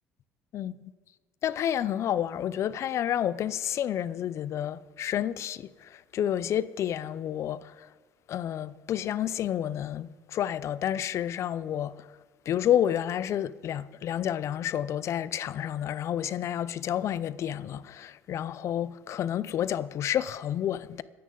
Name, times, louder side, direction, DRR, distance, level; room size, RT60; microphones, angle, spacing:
voice 1, 1.4-7.9 8.3-12.1 12.5-21.0, left 10 dB, 60° left, 0.6 m, -30 dB
24.5 x 9.5 x 3.9 m
supercardioid pair, 80°, 6 cm